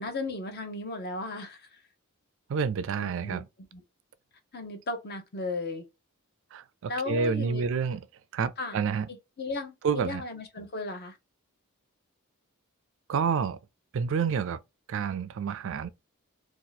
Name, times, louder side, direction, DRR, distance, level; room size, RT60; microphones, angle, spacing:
voice 1, 0.0-1.8 3.0-3.4 3.7-3.8 4.5-5.8 6.9-7.6 8.6-8.8 9.1-11.2, left 3 dB, 45° left, 0.8 m, -35 dB
voice 2, 2.5-3.4 6.5-8.0 8.3-9.1 9.8-10.2 13.1-13.6 13.9-14.6 14.9-15.9, right 6 dB, 60° right, 0.3 m, -29 dB
2.7 x 2.4 x 3.9 m
head